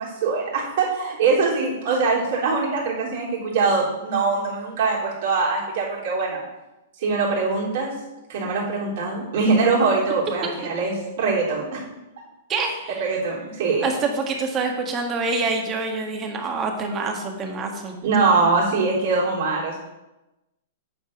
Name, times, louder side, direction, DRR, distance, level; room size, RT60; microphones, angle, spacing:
voice 1, 0.0-6.4 7.0-7.9 8.3-11.8 13.0-13.9 18.0-19.8, right 4 dB, 60° right, -4 dB, 3.5 m, -22 dB
voice 2, 12.5-13.0 13.8-18.0, right 4 dB, 25° right, 3 dB, 1.6 m, -26 dB
9.2 x 4.5 x 5.9 m, 0.98 s
hypercardioid pair, 125°, 0 cm